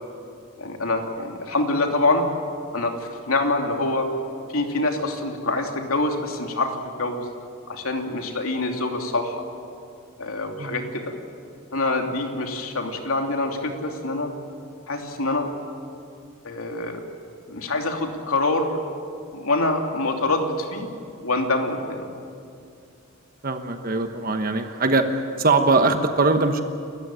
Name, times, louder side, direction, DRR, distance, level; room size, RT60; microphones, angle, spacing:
voice 1, 0.6-2.3 2.7-4.1 4.5-7.3 7.7-9.4 10.2-11.1 11.7-14.3 14.9-15.5 16.4-17.0 17.5-18.8 19.3-20.9 21.2-22.1, left 2 dB, 85° left, 2 dB, 3.0 m, -25 dB
voice 2, 10.6-10.9 23.4-25.1 25.4-26.6, right 3 dB, 45° right, 6 dB, 1.2 m, -21 dB
30.0 x 14.5 x 9.1 m, 2.4 s
head